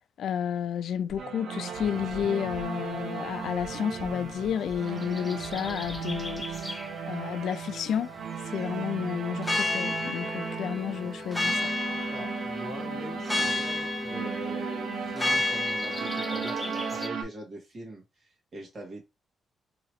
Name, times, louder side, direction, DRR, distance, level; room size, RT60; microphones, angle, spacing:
voice 1, 0.2-8.1 8.5-11.7, left 8 dB, 70° left, 0.3 m, -31 dB
sound 1, 1.1-6.9, left 2 dB, 35° left, 0.9 m, -48 dB
sound 2, 1.2-17.2, right 6 dB, 75° right, 0.7 m, -36 dB
sound 3, 4.9-6.9 9.4-17.1, left 2 dB, 10° left, 0.5 m, -32 dB
voice 2, 12.1-19.0, right 1 dB, 35° right, 1.5 m, -42 dB
2.9 x 2.8 x 2.9 m
wide cardioid pair, 155°, 0 cm